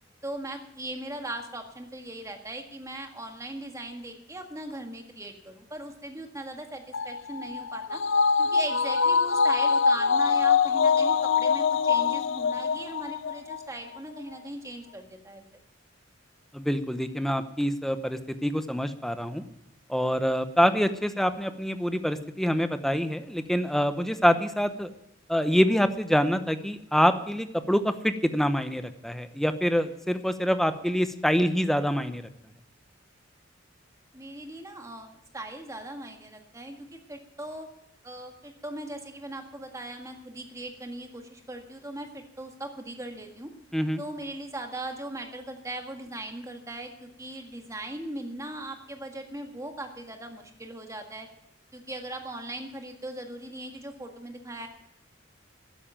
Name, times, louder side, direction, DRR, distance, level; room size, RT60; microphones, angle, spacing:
voice 1, 0.2-8.0 8.4-15.4 34.1-37.7 38.0-43.5 44.0-51.3 51.7-54.7, right 1 dB, 15° right, 4 dB, 1.8 m, -39 dB
sound 1, 6.9-13.6 13.9-14.0, left 5 dB, 75° left, 0.5 m, -24 dB
voice 2, 16.5-19.5 19.9-24.9 25.3-32.2 43.7-44.0, equal, ahead, 10 dB, 0.8 m, -26 dB
13.0 x 9.6 x 8.8 m, 0.80 s
head